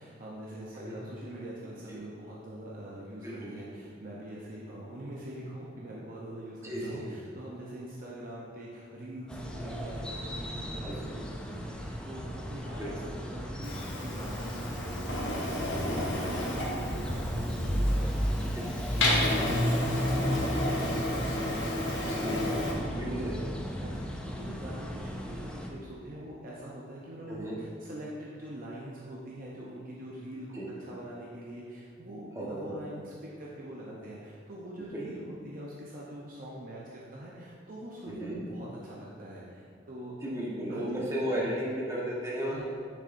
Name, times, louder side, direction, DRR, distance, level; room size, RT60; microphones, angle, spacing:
voice 1, 0.0-23.0 23.8-40.2 40.7-40.9 42.4-42.6, right 1 dB, 45° right, -5 dB, 0.7 m, -43 dB
voice 2, 6.6-7.1 10.8-10.9 12.8-12.9 17.7-17.8 18.7-18.8 22.2-22.4 22.9-23.5 27.3-27.6 30.5-30.7 32.4-32.8 34.9-35.0 38.0-38.4 40.2-42.6, right 1 dB, 15° right, -6 dB, 1.2 m, -34 dB
sound 1, 9.3-25.7, equal, 5° left, 0.4 m, -34 dB
Printer, 13.6-22.7, left 1 dB, 85° left, 1.3 m, -32 dB
6.7 x 6.5 x 2.6 m, 2.2 s
head